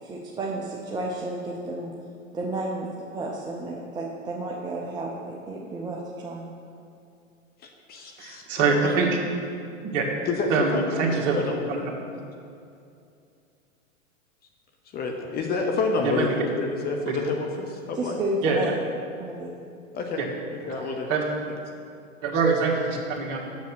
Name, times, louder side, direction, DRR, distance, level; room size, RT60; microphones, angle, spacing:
voice 1, 0.0-1.9 2.3-6.4 17.9-18.7 19.2-19.5, right 2 dB, 10° right, -3 dB, 0.6 m, -32 dB
voice 2, 7.6-8.4 8.8-8.9 10.3-11.9 14.9-18.2 19.9-20.2 20.5-21.1, left 3 dB, 25° left, 2 dB, 0.8 m, -29 dB
voice 3, 8.2-9.2 9.9-10.0 10.5-11.4 11.7-11.8 16.0-16.3 18.4-18.6 20.7-21.3 22.2-23.4, right 4 dB, 45° right, 0 dB, 1.7 m, -24 dB
7.3 x 6.8 x 6.1 m, 2.5 s
hypercardioid pair, 115°, 39 cm